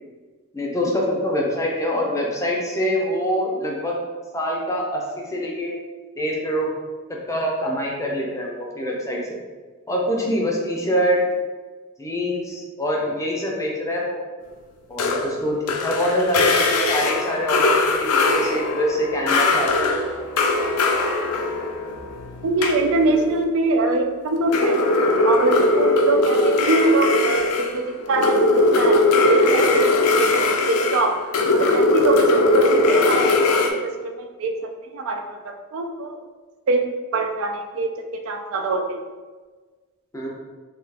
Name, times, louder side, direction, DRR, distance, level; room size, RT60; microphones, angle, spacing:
voice 1, 0.5-4.0 4.3-5.8 6.2-6.7 7.1-9.4 9.9-11.2 12.0-14.2 14.9-19.9 32.3-32.4 40.1-40.3, equal, 15° left, -2 dB, 0.4 m, -25 dB
sound 1, 15.0-23.4 24.4-33.7, left 2 dB, 85° left, 0.4 m, -20 dB
voice 2, 22.4-24.8 25.2-29.0 29.3-31.1 31.5-34.5 34.9-35.2 35.7-36.2 36.7-37.9 38.3-39.0, right 3 dB, 60° right, 5 dB, 0.3 m, -23 dB
2.8 x 2.4 x 3.3 m, 1.4 s
head